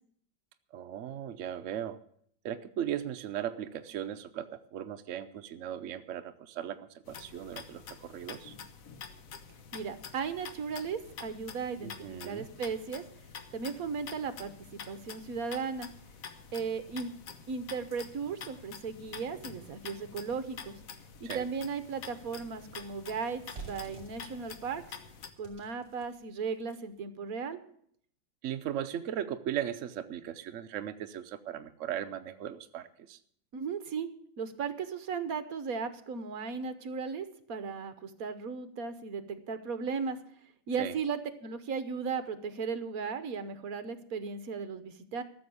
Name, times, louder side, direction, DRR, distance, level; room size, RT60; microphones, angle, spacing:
voice 1, 0.7-2.0 2.4-8.5 11.8-12.5 21.2-21.5 28.4-33.2 40.8-40.9, right 10 dB, 75° right, 8 dB, 0.7 m, -37 dB
sound 1, 7.1-25.3, left 6 dB, 55° left, 1.2 m, -48 dB
voice 2, 9.7-11.9 12.2-13.0 13.5-15.9 16.5-17.1 17.5-20.8 21.2-24.8 25.4-27.6 33.5-34.1 34.4-40.2 40.7-45.2, right 5 dB, 55° right, 11 dB, 1.3 m, -36 dB
sound 2, 21.1-27.0, right 4 dB, 30° right, 3.2 m, -52 dB
14.0 x 7.1 x 8.4 m, 0.63 s
omnidirectional pair, 2.1 m